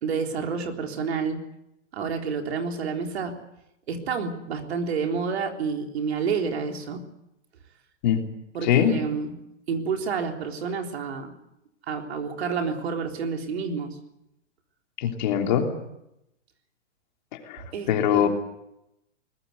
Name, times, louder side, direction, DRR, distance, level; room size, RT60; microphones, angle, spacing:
voice 1, 0.0-1.4 1.9-3.4 3.9-7.0 8.5-9.3 9.7-11.3 11.9-14.0 17.7-18.3, right 5 dB, 60° right, 3 dB, 3.8 m, -29 dB
voice 2, 8.6-9.0 15.0-15.7 17.3-18.3, left 9 dB, 40° left, 3 dB, 3.2 m, -23 dB
22.5 x 20.0 x 8.1 m, 0.85 s
hypercardioid pair, 170°, 36 cm